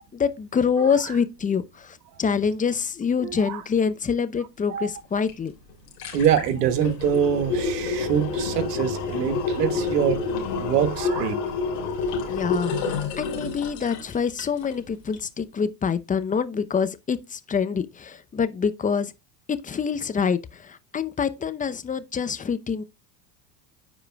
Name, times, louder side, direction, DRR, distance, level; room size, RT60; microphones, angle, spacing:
voice 1, 0.0-5.5 12.3-12.7 13.2-19.1 19.5-22.8, left 6 dB, 15° left, 0.7 m, -26 dB
voice 2, 0.7-1.2 3.2-3.7 4.7-4.9 6.1-10.2 10.6-11.4, right 8 dB, 80° right, 1.5 m, -24 dB
sound 1, 5.3-5.4 5.7-14.8 15.1-15.2, left 4 dB, 80° left, 3.3 m, -28 dB
14.5 x 4.9 x 2.3 m
hypercardioid pair, 90°, 47 cm